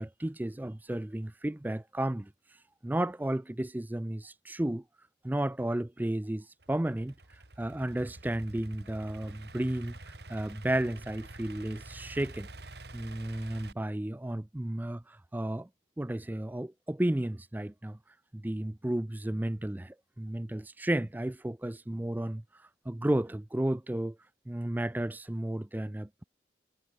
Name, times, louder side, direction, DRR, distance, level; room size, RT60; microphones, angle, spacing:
voice 1, 0.0-2.3 2.8-4.8 5.2-7.1 7.6-12.5 12.9-15.7 16.0-18.0 18.3-22.4 22.9-24.2 24.5-26.2, right 1 dB, 10° right, 0.3 m, -33 dB
Idling / Accelerating revving vroom, 6.6-13.7, right 2 dB, 60° right, 2.9 m, -48 dB
head